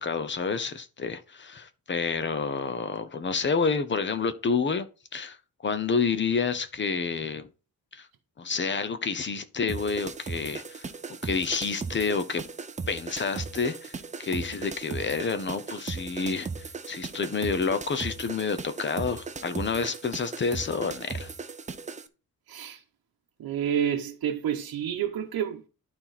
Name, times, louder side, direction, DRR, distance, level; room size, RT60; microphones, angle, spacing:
voice 1, 0.0-4.9 5.1-5.4 5.6-7.5 7.9-8.1 8.4-10.9 11.2-12.4 12.9-21.3, left 5 dB, 30° left, 0.9 m, -29 dB
sound 1, 9.7-22.1, right 4 dB, 20° right, 0.5 m, -37 dB
voice 2, 22.5-22.8 23.4-25.7, right 9 dB, 90° right, 1.0 m, -29 dB
11.5 x 4.4 x 4.1 m
wide cardioid pair, 155°, 35 cm